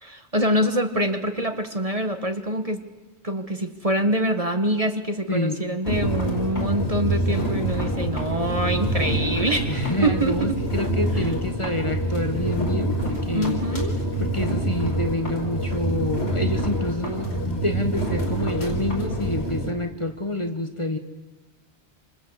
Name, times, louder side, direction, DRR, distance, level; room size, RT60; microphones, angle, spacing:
voice 1, 0.0-2.8 3.2-10.6 13.3-14.0, right 1 dB, 30° right, 8 dB, 1.6 m, -25 dB
voice 2, 5.3-5.6 9.7-13.6 14.2-21.0, left 1 dB, 25° left, 7 dB, 1.5 m, -28 dB
sound 1, 5.8-19.7, right 1 dB, 70° left, 5.2 m, -26 dB
28.0 x 26.0 x 8.1 m, 1.2 s
omnidirectional pair, 1.1 m